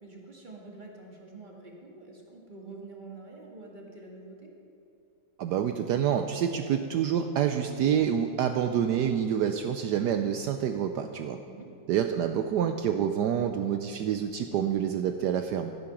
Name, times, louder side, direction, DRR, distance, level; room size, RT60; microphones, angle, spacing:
voice 1, 0.0-4.5 11.4-11.7, right 3 dB, 25° right, -2 dB, 1.8 m, -46 dB
voice 2, 5.4-11.4 11.9-15.7, right 9 dB, 75° right, 6 dB, 1.0 m, -27 dB
14.5 x 8.7 x 5.9 m, 2.7 s
omnidirectional pair, 2.1 m